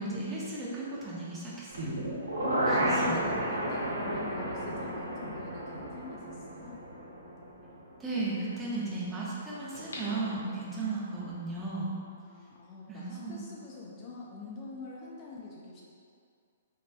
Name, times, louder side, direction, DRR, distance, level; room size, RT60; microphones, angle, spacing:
voice 1, 0.0-2.0 2.6-3.2 4.6-4.8 8.0-11.9 12.9-13.4, right 3 dB, 15° right, -7 dB, 0.6 m, -35 dB
sound 1, 1.7-7.7 8.1-8.2, right 1 dB, 85° right, 0.7 m, -32 dB
voice 2, 2.7-6.8 8.7-9.0 9.9-10.7 12.0-15.8, left 4 dB, 30° left, -5 dB, 0.4 m, -46 dB
sound 2, 9.7-11.1 11.6-11.7, left 1 dB, 80° left, 0.5 m, -44 dB
3.2 x 2.1 x 2.5 m, 2.3 s
hypercardioid pair, 125°, 0 cm